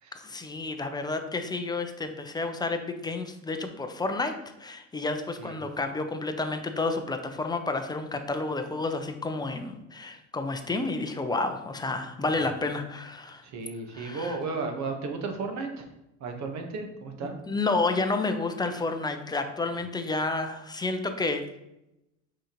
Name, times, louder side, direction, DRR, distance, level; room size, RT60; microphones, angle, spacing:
voice 1, 0.1-4.3 4.6-13.4 13.9-14.4 17.2-21.4, left 3 dB, 10° left, 6 dB, 0.6 m, -30 dB
voice 2, 13.4-15.8 16.2-17.4, right 4 dB, 45° right, 4 dB, 1.3 m, -34 dB
6.3 x 5.1 x 3.0 m, 0.88 s
supercardioid pair, 105°, 39 cm